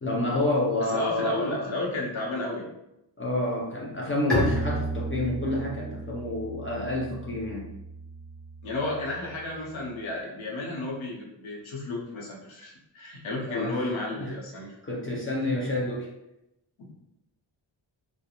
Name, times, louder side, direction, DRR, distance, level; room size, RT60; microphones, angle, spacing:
voice 1, 0.0-1.7 3.2-7.7 13.5-13.8 14.1-14.3 14.8-16.1, left 1 dB, 30° left, -5 dB, 0.4 m, -29 dB
voice 2, 0.9-2.7 8.6-14.7 16.8-17.0, left 2 dB, 80° left, -2 dB, 0.8 m, -32 dB
Bowed string instrument, 4.3-9.9, right 1 dB, ahead, 0.7 m, -33 dB
2.3 x 2.1 x 2.8 m, 0.86 s
wide cardioid pair, 155°, 47 cm